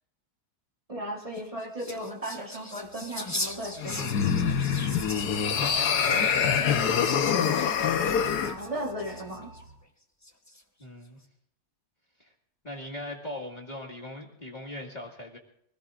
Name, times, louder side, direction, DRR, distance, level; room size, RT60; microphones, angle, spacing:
voice 1, 0.9-4.1 8.3-9.5, right 1 dB, 20° right, -1 dB, 2.4 m, -36 dB
sound 1, 1.2-9.6 10.2-10.8, left 1 dB, 10° left, 1.0 m, -40 dB
sound 2, 2.8-9.7, right 2 dB, 75° right, 5.0 m, -49 dB
sound 3, 3.8-8.6, left 7 dB, 80° left, 1.5 m, -25 dB
voice 2, 5.1-7.2 10.8-11.2 12.2-12.3 12.6-15.4, left 1 dB, 30° left, -1 dB, 2.0 m, -40 dB
24.5 x 17.5 x 2.5 m, 0.71 s
omnidirectional pair, 1.7 m